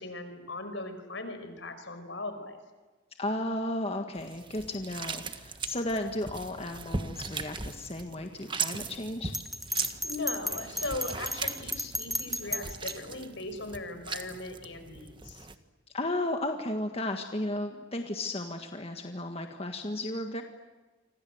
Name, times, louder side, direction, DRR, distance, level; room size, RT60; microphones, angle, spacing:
voice 1, 0.0-2.6 10.0-15.5, left 2 dB, 70° left, 9 dB, 5.2 m, -38 dB
voice 2, 3.2-9.3 15.9-20.4, left 1 dB, 30° left, 5 dB, 1.7 m, -34 dB
sound 1, 4.2-15.6, right 4 dB, 25° right, 1.5 m, -39 dB
Bell, 9.3-12.9, equal, ahead, 1.6 m, -33 dB
29.0 x 26.0 x 8.0 m, 1.3 s
head